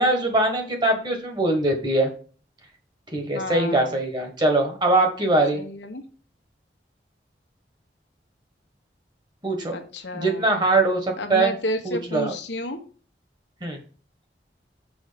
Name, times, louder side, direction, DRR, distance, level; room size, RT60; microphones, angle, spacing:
voice 1, 0.0-2.1 3.1-5.6 9.4-9.8 10.1-11.5 11.8-12.3 13.6-13.8, right 2 dB, 25° right, 3 dB, 1.5 m, -22 dB
voice 2, 3.3-4.0 5.5-6.0 9.7-10.5 11.2-12.8, left 1 dB, 85° left, 5 dB, 1.2 m, -31 dB
6.2 x 5.2 x 5.2 m, 0.40 s
head